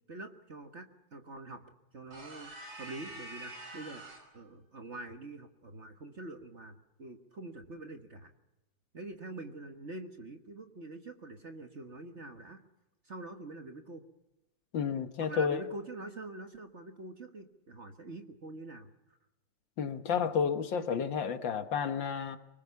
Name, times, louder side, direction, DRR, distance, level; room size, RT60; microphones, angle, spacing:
voice 1, 0.1-1.7 1.9-4.1 4.3-8.3 8.9-12.6 13.0-14.0 15.2-19.2, right 2 dB, 35° right, 7 dB, 1.5 m, -45 dB
sound 1, 2.1-4.4, right 2 dB, 65° right, 5.7 m, -46 dB
voice 2, 14.7-15.6 19.8-22.4, left 6 dB, 65° left, 9 dB, 1.9 m, -31 dB
25.0 x 20.5 x 7.1 m, 0.94 s
omnidirectional pair, 2.3 m